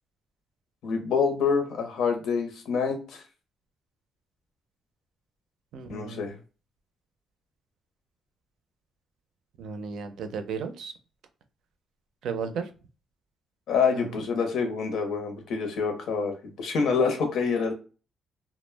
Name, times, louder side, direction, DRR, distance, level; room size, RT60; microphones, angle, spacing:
voice 1, 0.8-3.2 5.9-6.3 13.7-17.7, left 5 dB, 85° left, 5 dB, 0.7 m, -26 dB
voice 2, 5.7-6.4 9.6-10.9 12.2-12.7 13.9-14.2, right 6 dB, 80° right, 8 dB, 0.4 m, -34 dB
2.2 x 2.0 x 3.2 m, 0.34 s
cardioid pair, 140°, 0 cm